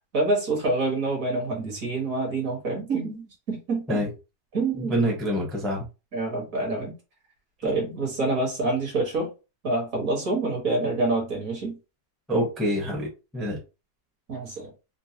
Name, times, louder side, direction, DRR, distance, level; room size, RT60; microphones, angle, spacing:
voice 1, 0.1-4.0 4.5-5.0 6.1-6.9 7.6-9.3 9.6-11.8 14.3-14.7, right 2 dB, 50° right, 1.8 m, -27 dB
voice 2, 4.9-5.8 12.3-13.1 13.3-13.6, equal, ahead, 0.8 m, -25 dB
4.5 x 2.1 x 2.8 m
omnidirectional pair, 1.9 m